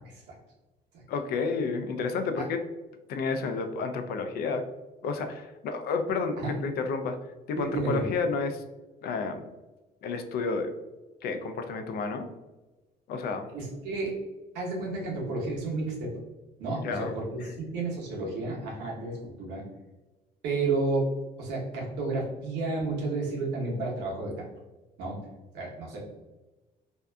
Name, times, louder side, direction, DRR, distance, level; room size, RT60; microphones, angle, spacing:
voice 1, 1.1-2.6 3.1-4.7 5.0-7.2 7.5-8.6 9.0-9.5 10.0-10.7 11.2-12.3 13.1-13.5 16.8-17.1, left 4 dB, 65° left, 7 dB, 0.4 m, -30 dB
voice 2, 7.6-8.1 13.5-14.1 14.5-16.2 16.6-17.2 17.6-19.6 20.4-21.1 21.4-24.4 25.0-25.2 25.5-26.0, right 3 dB, 85° right, -3 dB, 0.9 m, -31 dB
2.6 x 2.4 x 2.2 m, 1.1 s
cardioid pair, 110°, 17 cm